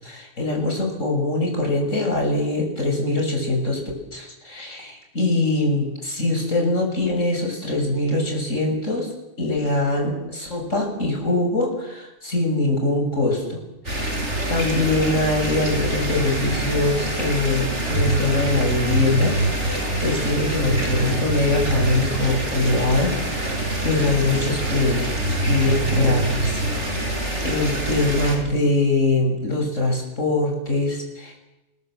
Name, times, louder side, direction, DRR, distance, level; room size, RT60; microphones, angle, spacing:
voice 1, 0.0-3.8 4.1-9.1 9.4-14.2 14.5-25.1 25.5-27.0 27.4-31.4, left 2 dB, 80° left, 1 dB, 7.0 m, -23 dB
sound 1, 13.9-28.4, right 1 dB, 65° right, 5.6 m, -25 dB
29.0 x 21.5 x 7.6 m, 0.97 s
omnidirectional pair, 1.3 m